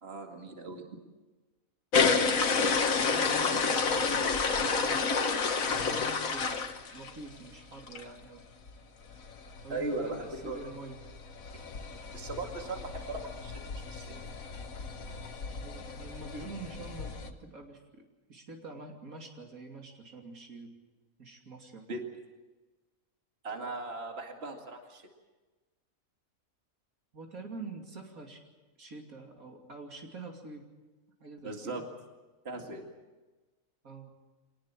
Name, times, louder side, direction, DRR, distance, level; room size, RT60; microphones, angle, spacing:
voice 1, 0.0-0.8 9.7-10.6 12.1-13.6 13.9-14.1 21.9-22.0 23.4-25.1 31.4-31.8 32.4-32.9, right 2 dB, 45° right, 3 dB, 2.5 m, -38 dB
sound 1, 1.9-7.4 7.8-8.0 8.4-8.5 8.7-8.8 9.0-17.3, left 5 dB, 75° left, 1.8 m, -31 dB
voice 2, 2.7-6.7 6.9-8.5 9.6-11.0 15.6-18.0 18.3-20.7 21.2-21.9 27.1-28.4 28.8-30.6 31.2-31.8 33.8-34.1, right 3 dB, 80° right, 2 dB, 3.3 m, -46 dB
25.0 x 19.0 x 7.5 m, 1.2 s
omnidirectional pair, 1.5 m